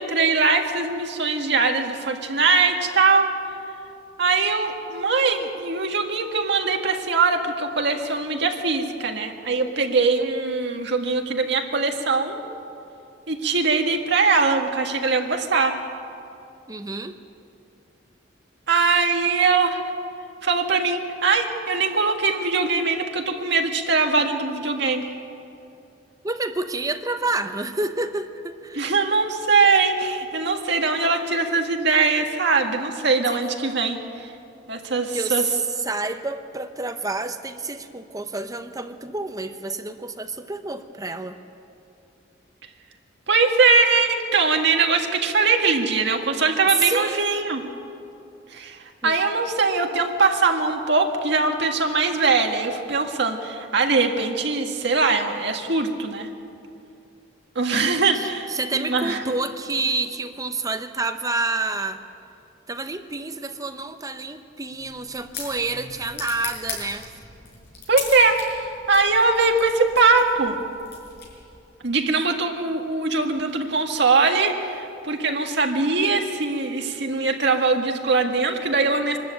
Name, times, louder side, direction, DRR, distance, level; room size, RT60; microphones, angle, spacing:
voice 1, 0.0-3.3 4.2-12.4 13.3-15.8 18.7-19.8 20.4-25.1 28.8-34.0 34.7-35.5 43.3-47.6 48.5-48.8 49.0-56.3 57.6-59.2 67.9-68.6 68.9-70.6 71.8-79.2, right 4 dB, 65° right, 3 dB, 1.8 m, -21 dB
voice 2, 16.7-17.2 26.2-28.9 33.3-33.4 35.1-41.4 46.8-47.2 49.0-49.1 58.1-62.0 62.7-67.1, right 3 dB, 20° right, 8 dB, 0.9 m, -28 dB
sound 1, 64.7-71.6, left 5 dB, 60° left, 6.0 m, -38 dB
24.0 x 13.0 x 8.9 m, 2.6 s
head